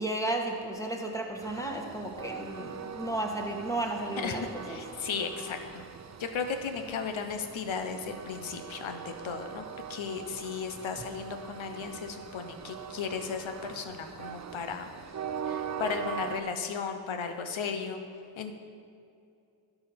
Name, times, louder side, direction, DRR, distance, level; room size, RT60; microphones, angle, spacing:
voice 1, 0.0-4.8, right 1 dB, 5° left, 1 dB, 1.6 m, -33 dB
Train, 1.4-16.4, right 7 dB, 35° right, 0.6 m, -42 dB
voice 2, 4.2-5.8 6.2-14.9 15.4-18.0 18.4-18.5, left 6 dB, 70° left, 6 dB, 1.0 m, -35 dB
12.0 x 4.9 x 5.2 m, 2.5 s
supercardioid pair, 45°, 49 cm